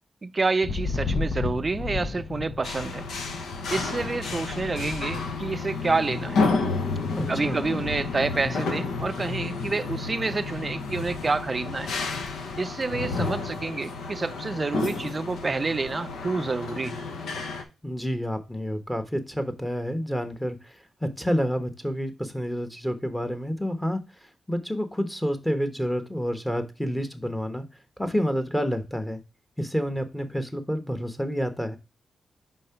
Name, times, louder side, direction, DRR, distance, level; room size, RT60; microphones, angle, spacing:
voice 1, 0.2-3.0 3.7-6.4 7.3-11.9 12.6-17.0, right 3 dB, 35° right, 0.4 m, -28 dB
Thunder, 0.6-13.5 13.8-14.4 14.7-16.2, left 4 dB, 60° left, 0.7 m, -37 dB
sound 1, 2.6-17.6, left 4 dB, 90° left, 1.0 m, -31 dB
voice 2, 7.1-7.7 17.8-27.6 28.0-29.2 29.6-31.8, equal, 5° left, 1.1 m, -29 dB
5.3 x 3.8 x 5.6 m
cardioid pair, 70°, 0 cm